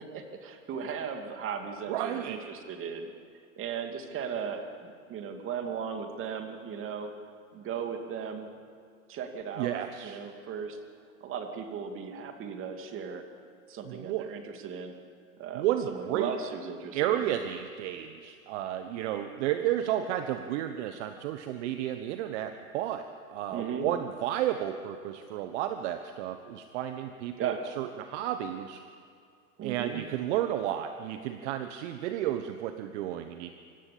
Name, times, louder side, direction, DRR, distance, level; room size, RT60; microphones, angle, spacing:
voice 1, 0.0-3.1 3.6-7.1 7.5-8.5 9.1-9.7 10.0-10.8 11.2-13.2 13.7-14.9 15.4-17.3 23.5-23.9 27.4-27.6 29.6-30.0, right 7 dB, 30° right, 5 dB, 2.6 m, -36 dB
voice 2, 1.9-2.4 9.6-10.2 13.8-14.3 15.5-16.3 16.9-28.8 29.6-33.5, right 11 dB, 50° right, 8 dB, 1.2 m, -32 dB
26.0 x 14.0 x 8.5 m, 2.4 s
hypercardioid pair, 125°, 44 cm